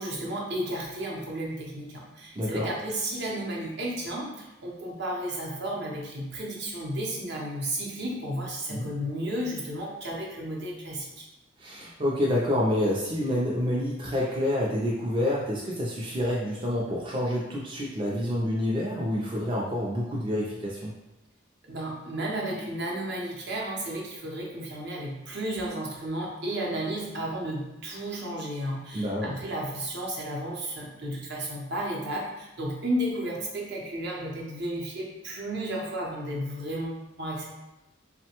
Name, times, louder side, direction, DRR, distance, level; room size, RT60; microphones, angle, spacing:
voice 1, 0.0-11.3 21.7-37.5, right 1 dB, 60° right, -2 dB, 0.7 m, -33 dB
voice 2, 2.3-2.7 8.7-8.9 11.6-20.9 28.9-29.3, left 1 dB, 25° right, -4 dB, 0.4 m, -28 dB
3.1 x 2.1 x 2.9 m, 0.98 s
head